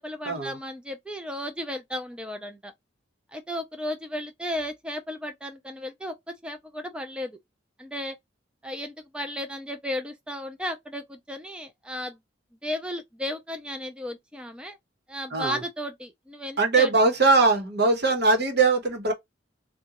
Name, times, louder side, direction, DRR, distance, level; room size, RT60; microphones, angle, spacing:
voice 1, 0.0-2.7 3.3-6.1 6.4-7.4 7.8-8.2 8.6-12.2 12.6-14.8 15.1-16.9, left 1 dB, 5° right, 0.4 m, -34 dB
voice 2, 15.3-15.6 16.6-19.1, right 3 dB, 60° right, 1.0 m, -21 dB
3.7 x 2.3 x 2.9 m
head